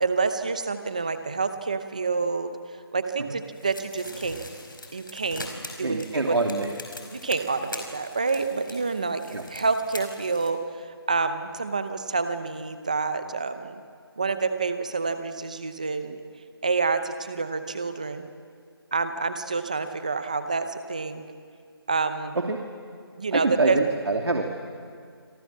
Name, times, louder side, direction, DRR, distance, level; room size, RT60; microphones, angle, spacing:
voice 1, 0.0-2.5 2.9-4.4 4.9-5.5 5.8-6.4 7.1-13.8 14.2-16.2 16.6-18.3 18.9-21.2 21.9-22.4 23.2-23.8, right 4 dB, 15° right, 10 dB, 0.8 m, -28 dB
sound 1, 3.5-10.5, left 2 dB, 55° left, 5.2 m, -42 dB
voice 2, 5.8-6.7 9.3-9.4 22.4-22.6 23.3-24.5, right 3 dB, 80° right, 2 dB, 2.7 m, -25 dB
29.0 x 27.0 x 7.4 m, 2.2 s
figure-of-eight pair, 180°, 13 cm